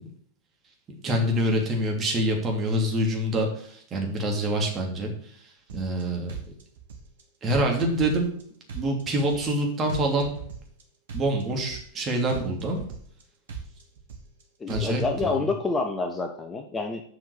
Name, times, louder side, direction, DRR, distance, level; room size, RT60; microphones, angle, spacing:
voice 1, 1.0-5.3 5.7-6.3 7.4-8.3 8.7-10.3 11.1-12.9 14.7-15.4, right 1 dB, 25° right, 1 dB, 2.8 m, -26 dB
sound 1, 5.7-6.0 6.3-7.2 7.5-8.4 8.7-9.6 9.9-10.8 11.1-12.0 12.3-13.2 13.5-14.4 14.7-15.3, right 6 dB, 60° right, 1.7 m, -39 dB
voice 2, 14.6-17.0, left 3 dB, 15° left, 5 dB, 1.0 m, -28 dB
7.9 x 5.7 x 7.1 m, 0.62 s
figure-of-eight pair, 90°, 0 cm